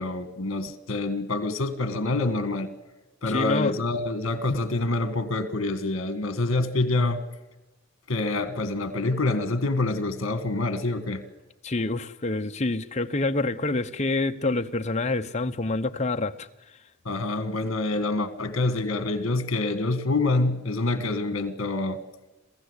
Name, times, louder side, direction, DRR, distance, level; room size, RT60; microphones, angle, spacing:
voice 1, 0.0-2.7 3.2-7.2 8.1-11.2 17.1-22.0, left 2 dB, 65° left, 1.8 m, -26 dB
voice 2, 3.3-3.8 11.6-16.5, left 2 dB, 30° left, 0.7 m, -27 dB
27.5 x 15.5 x 8.2 m
head